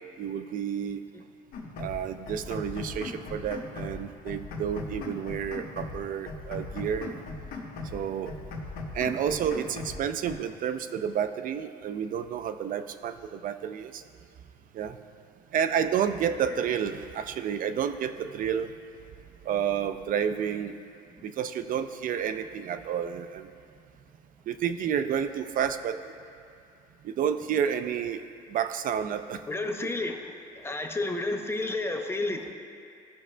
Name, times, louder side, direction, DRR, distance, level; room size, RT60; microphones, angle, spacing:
voice 1, 0.2-1.0 1.8-7.2 7.9-8.4 8.9-14.0 14.7-15.0 15.5-18.7 19.4-20.8 21.2-23.5 24.5-26.0 27.0-28.2 28.5-29.4, right 8 dB, 55° right, 11 dB, 0.4 m, -30 dB
sound 1, 1.5-2.0 2.3-4.0 4.3-6.0 6.3-8.0 8.3-10.0 10.3-10.4, left 3 dB, 65° left, 1.3 m, -38 dB
voice 2, 29.5-32.5, left 2 dB, 15° left, 4 dB, 0.7 m, -31 dB
16.5 x 6.0 x 2.2 m, 2.4 s
cardioid pair, 110°, 17 cm